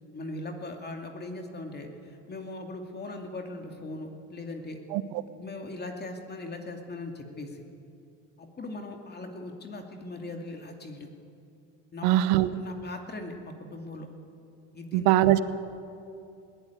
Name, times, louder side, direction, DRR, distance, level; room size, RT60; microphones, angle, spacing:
voice 1, 0.1-4.8 5.3-7.6 8.4-11.1 11.9-12.2 12.5-14.1 14.7-15.1, left 2 dB, 30° left, 3 dB, 2.5 m, -39 dB
voice 2, 12.0-12.5 14.9-15.4, right 14 dB, 85° right, 13 dB, 1.0 m, -21 dB
20.0 x 17.0 x 9.3 m, 2.6 s
supercardioid pair, 105°, 35 cm